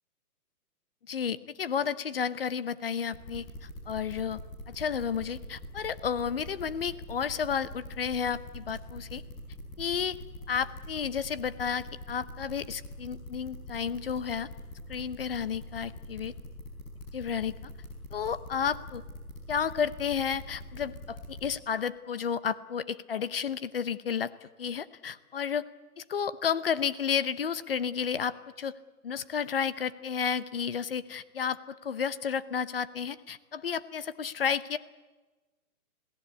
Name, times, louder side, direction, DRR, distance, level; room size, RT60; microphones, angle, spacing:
voice 1, 1.1-4.4 4.7-9.2 9.8-10.2 10.5-14.5 14.9-16.3 17.1-17.5 18.1-19.0 19.5-25.6 26.0-28.8 29.0-34.8, left 7 dB, 40° left, 15 dB, 0.9 m, -32 dB
sound 1, 3.1-21.5, left 1 dB, 15° left, 5.3 m, -43 dB
28.5 x 18.0 x 8.3 m, 1.2 s
hypercardioid pair, 175°, 44 cm